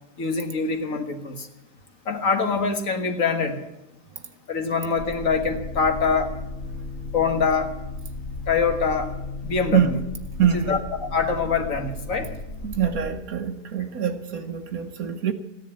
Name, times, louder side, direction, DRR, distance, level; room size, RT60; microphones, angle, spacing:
voice 1, 0.2-1.5 2.1-3.6 4.5-6.3 7.1-7.7 8.5-9.1 9.4-10.0 10.7-12.3, left 5 dB, 50° left, 1.8 m, -24 dB
sound 1, 5.0-13.1, left 3 dB, 10° left, 1.7 m, -35 dB
voice 2, 10.4-10.7 12.6-15.3, right 8 dB, 60° right, 1.3 m, -24 dB
14.5 x 10.5 x 8.7 m
omnidirectional pair, 1.8 m